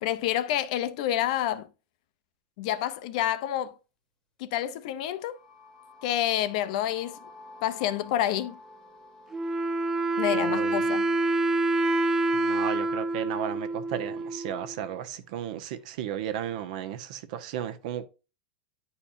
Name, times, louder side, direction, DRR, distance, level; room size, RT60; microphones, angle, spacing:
voice 1, 0.0-1.7 2.6-3.7 4.4-5.4 6.0-7.2 7.6-8.6 10.2-11.1, left 12 dB, 50° left, 0.6 m, -28 dB
sound 1, 5.0-12.9, left 2 dB, 10° left, 1.2 m, -52 dB
Wind instrument woodwind instrument, 9.3-14.8, right 2 dB, 10° right, 0.3 m, -27 dB
voice 2, 10.3-10.8 12.3-18.1, right 10 dB, 50° right, 0.9 m, -34 dB
10.0 x 4.3 x 2.6 m
supercardioid pair, 160°, 5 cm